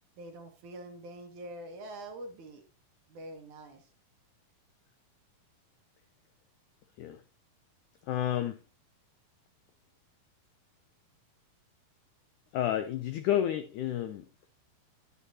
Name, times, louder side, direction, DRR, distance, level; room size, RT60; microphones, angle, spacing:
voice 1, 0.2-2.6 3.1-3.9, right 1 dB, 60° right, 2.5 m, -45 dB
voice 2, 8.0-8.6 12.5-14.3, left 11 dB, 90° left, 1.7 m, -30 dB
10.0 x 9.9 x 2.8 m
omnidirectional pair, 4.5 m